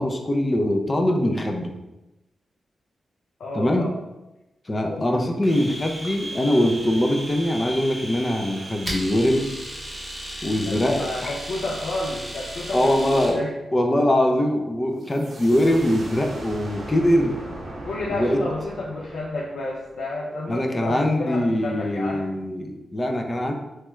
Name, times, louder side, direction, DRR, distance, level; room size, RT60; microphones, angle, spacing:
voice 1, 0.0-1.7 3.5-3.9 4.7-9.5 10.4-11.3 12.7-13.4 13.7-17.4 18.1-18.4 20.5-23.5, left 1 dB, 25° left, 3 dB, 0.4 m, -22 dB
voice 2, 3.4-3.9 4.9-5.2 10.6-13.5 17.8-22.3, left 2 dB, 90° left, -4 dB, 0.4 m, -31 dB
Domestic sounds home sounds, 5.4-13.4, equal, 10° right, 0.7 m, -35 dB
sound 1, 15.0-20.5, right 1 dB, 55° right, 0.7 m, -39 dB
3.1 x 2.3 x 3.0 m, 0.98 s
wide cardioid pair, 115°, 0 cm